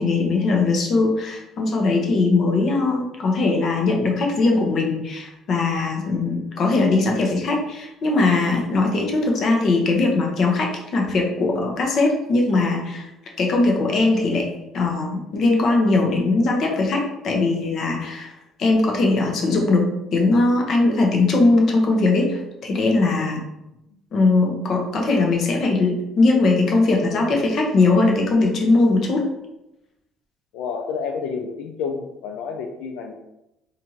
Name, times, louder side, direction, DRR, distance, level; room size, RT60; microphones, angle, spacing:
voice 1, 0.0-13.1 13.4-14.5 14.7-18.3 18.6-19.8 20.1-23.4 24.1-29.2, left 3 dB, 45° left, 0 dB, 0.8 m, -20 dB
voice 2, 30.5-33.1, left 5 dB, 80° left, 2 dB, 0.4 m, -29 dB
4.3 x 2.5 x 2.8 m, 0.90 s
cardioid pair, 155°, 0 cm